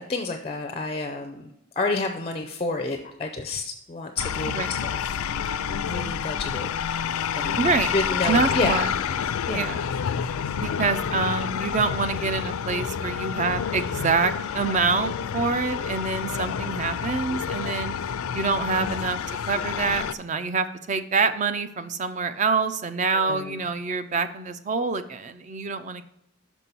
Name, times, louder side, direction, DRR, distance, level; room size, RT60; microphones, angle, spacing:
voice 1, 0.0-5.5 5.9-6.7 7.3-7.6 7.9-8.9 9.5-9.8 23.1-23.6, left 3 dB, 25° left, 6 dB, 0.4 m, -30 dB
sound 1, 4.2-20.1, left 7 dB, 85° left, 0.4 m, -29 dB
voice 2, 7.6-7.9 8.2-8.9 9.5-9.8 10.6-17.9 18.3-19.2 19.5-26.0, right 4 dB, 35° right, 11 dB, 0.4 m, -26 dB
6.0 x 5.4 x 4.4 m, 0.79 s
head